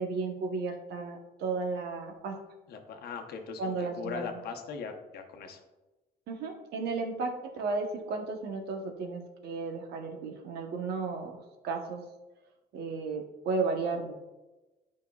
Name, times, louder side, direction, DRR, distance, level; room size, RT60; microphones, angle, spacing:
voice 1, 0.0-2.4 3.6-4.3 6.3-11.4 11.6-12.0 12.7-14.1, right 4 dB, 75° right, 4 dB, 1.0 m, -34 dB
voice 2, 2.7-5.6, left 5 dB, 70° left, 4 dB, 0.9 m, -40 dB
9.3 x 5.2 x 2.3 m, 1.1 s
cardioid pair, 110°, 17 cm